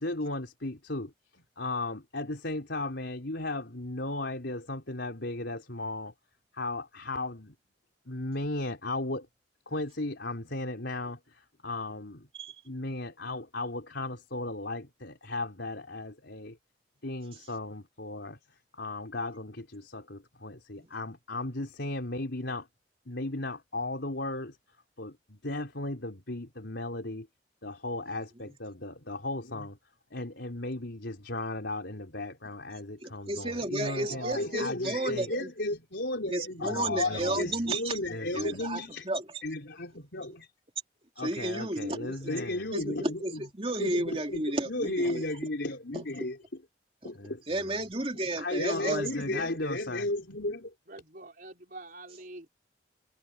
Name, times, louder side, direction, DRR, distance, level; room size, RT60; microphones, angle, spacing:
voice 1, 0.0-6.1 6.5-7.5 8.1-9.3 9.7-12.3 12.7-16.6 17.0-18.4 18.7-22.7 23.1-24.6 25.0-27.3 27.6-29.8 30.1-39.1 39.4-40.5 41.2-43.4 43.8-46.4 47.0-47.7 48.3-50.7, left 2 dB, 80° left, 3.8 m, -35 dB
voice 2, 33.0-35.5 36.3-38.0 38.3-39.2 41.2-42.3 42.7-45.3 45.9-46.0 47.5-49.5, right 1 dB, 30° right, 2.9 m, -33 dB
voice 3, 33.8-34.6 50.9-52.5, right 2 dB, 50° right, 4.8 m, -44 dB
head